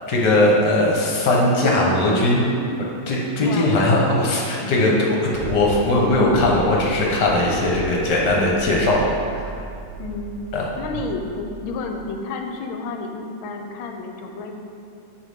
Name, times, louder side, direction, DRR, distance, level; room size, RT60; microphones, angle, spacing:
voice 1, 0.1-2.5 3.1-9.0 9.4-9.5 10.5-10.7, left 1 dB, 55° left, -3 dB, 1.6 m, -19 dB
voice 2, 3.4-3.9 4.6-4.9 10.0-10.4 10.8-14.5, left 3 dB, 75° left, 4 dB, 1.4 m, -31 dB
sound 1, 5.3-12.2, right 3 dB, 80° right, 1.6 m, -36 dB
7.0 x 6.9 x 3.6 m, 2.5 s
omnidirectional pair, 2.4 m